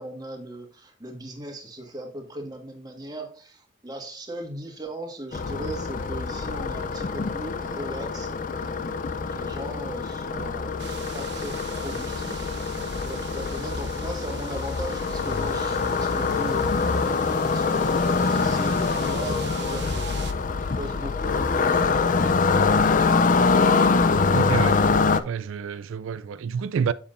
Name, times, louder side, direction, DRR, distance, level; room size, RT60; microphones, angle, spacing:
voice 1, 0.0-12.8 13.0-23.7, right 1 dB, 20° right, 1.5 m, -38 dB
sound 1, 5.3-25.2, left 4 dB, 40° left, 0.4 m, -24 dB
sound 2, 10.8-20.3, right 8 dB, 60° right, 0.8 m, -43 dB
voice 2, 24.3-24.8 25.2-26.9, right 6 dB, 90° right, 0.4 m, -28 dB
7.1 x 7.0 x 2.5 m
head